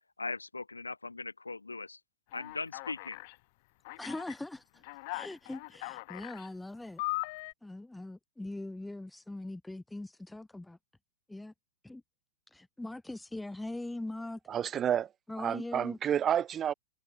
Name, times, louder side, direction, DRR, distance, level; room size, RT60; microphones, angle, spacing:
voice 1, 0.2-2.0 2.3-3.2, left 3 dB, 85° left, 0.8 m, -39 dB
Alarm, 2.3-3.3 3.8-4.3 4.8-6.5 7.0-7.5, left 25 dB, 50° left, 0.6 m, -39 dB
voice 2, 4.0-4.8 5.1-7.0 7.6-10.8 11.3-11.5 11.8-12.0 12.5-14.4 15.3-16.0, left 2 dB, 5° left, 1.1 m, -41 dB
voice 3, 14.5-15.1 15.4-16.7, right 9 dB, 25° right, 0.3 m, -30 dB
figure-of-eight pair, 100°, 0 cm